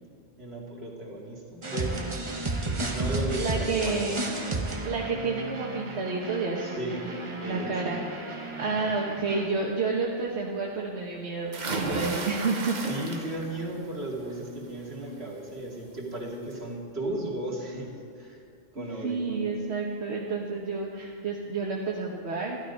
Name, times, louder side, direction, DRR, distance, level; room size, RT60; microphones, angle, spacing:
voice 1, 0.4-2.1 2.8-4.2 6.6-8.0 8.6-8.9 12.8-18.4 18.7-19.5, right 1 dB, 70° right, -3 dB, 2.6 m, -35 dB
sound 1, 1.6-9.5, right 2 dB, 30° right, 1.1 m, -33 dB
voice 2, 3.4-4.2 4.8-7.0 7.4-8.0 8.6-12.9 18.7-22.6, right 4 dB, 85° right, -2 dB, 1.4 m, -30 dB
sound 2, 11.5-13.6 14.0-14.4 15.8-15.9 16.3-16.4, right 3 dB, 45° right, 1.2 m, -33 dB
14.0 x 12.0 x 5.3 m, 2.5 s
omnidirectional pair, 1.1 m